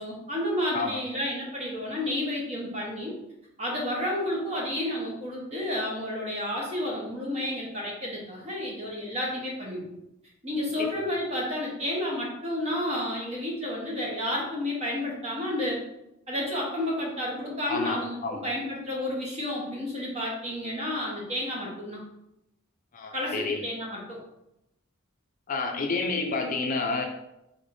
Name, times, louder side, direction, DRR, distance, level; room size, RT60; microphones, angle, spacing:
voice 1, 0.0-3.1 3.6-10.0 10.4-15.8 16.3-22.0 23.1-24.2, left 1 dB, 30° right, -3 dB, 1.2 m, -31 dB
voice 2, 17.7-18.4 22.9-23.6 25.5-27.1, left 3 dB, 40° left, 3 dB, 0.4 m, -29 dB
5.0 x 3.5 x 2.6 m, 0.85 s
head